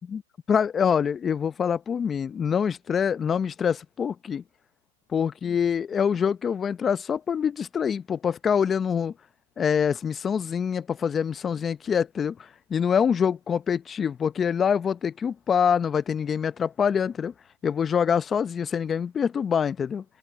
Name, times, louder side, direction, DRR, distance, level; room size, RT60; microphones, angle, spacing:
voice 1, 0.5-4.4 5.1-9.1 9.6-12.4 12.7-17.3 17.6-20.0, left 7 dB, 20° left, 0.9 m, -25 dB
open air
hypercardioid pair, 130°, 0 cm